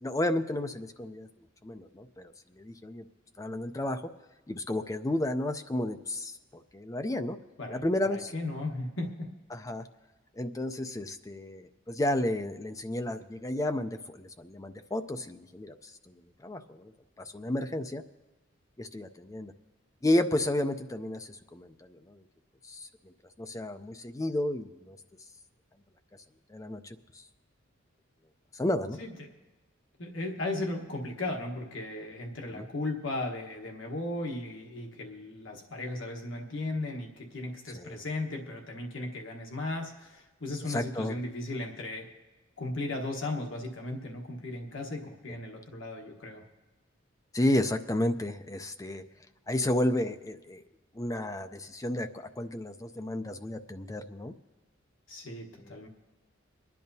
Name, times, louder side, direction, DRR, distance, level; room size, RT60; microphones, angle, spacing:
voice 1, 0.0-1.3 1.6-2.3 2.6-3.0 3.4-4.0 4.5-7.4 7.7-8.3 9.5-9.8 10.4-15.7 16.4-16.9 17.3-18.0 18.8-19.5 20.0-22.2 22.7-22.9 23.4-25.0 26.5-27.0 28.6-29.0 32.5-32.7 37.7-38.0 40.7-41.2 47.3-49.0 49.5-50.6 51.0-52.1 52.4-54.3, left 1 dB, 15° left, 8 dB, 0.4 m, -32 dB
voice 2, 7.6-9.3 29.0-29.3 30.0-42.1 42.6-46.4 55.1-55.9, left 2 dB, 70° left, 2 dB, 1.2 m, -36 dB
25.5 x 10.5 x 2.7 m, 1.2 s
head